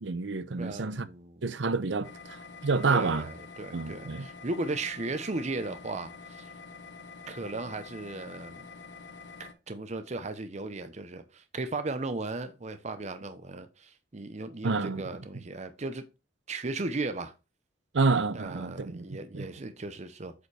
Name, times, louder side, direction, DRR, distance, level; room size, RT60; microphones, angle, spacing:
voice 1, 0.0-1.0 1.4-3.3 3.7-4.3 14.6-15.0 17.9-19.5, right 4 dB, 85° right, 0.7 m, -29 dB
voice 2, 0.6-1.4 2.9-6.5 7.3-8.6 9.4-16.0 16.5-17.3 18.3-20.3, right 2 dB, 40° right, 0.7 m, -36 dB
sound 1, 2.0-9.5, left 4 dB, 80° left, 1.1 m, -47 dB
8.1 x 5.1 x 3.2 m
head